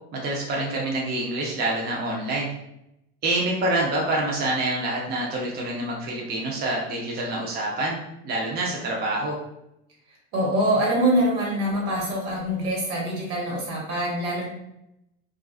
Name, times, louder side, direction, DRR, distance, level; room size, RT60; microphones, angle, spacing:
voice 1, 0.1-2.5 3.2-8.0 8.2-9.4, right 2 dB, 30° right, -3 dB, 0.5 m, -26 dB
voice 2, 10.1-14.5, right 1 dB, 75° right, -3 dB, 1.2 m, -24 dB
2.4 x 2.3 x 2.3 m, 0.82 s
supercardioid pair, 115°, 32 cm